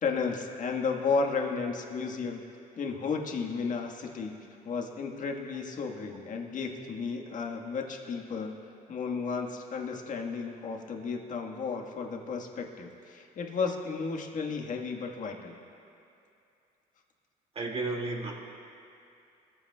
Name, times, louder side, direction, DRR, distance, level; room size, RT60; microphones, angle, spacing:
voice 1, 0.0-2.5 2.8-4.4 4.6-8.6 8.9-15.6, left 5 dB, 50° left, 1 dB, 1.6 m, -33 dB
voice 2, 17.5-18.3, right 3 dB, 35° right, -1 dB, 2.4 m, -32 dB
21.5 x 15.0 x 2.4 m, 2.6 s
cardioid pair, 110°, 17 cm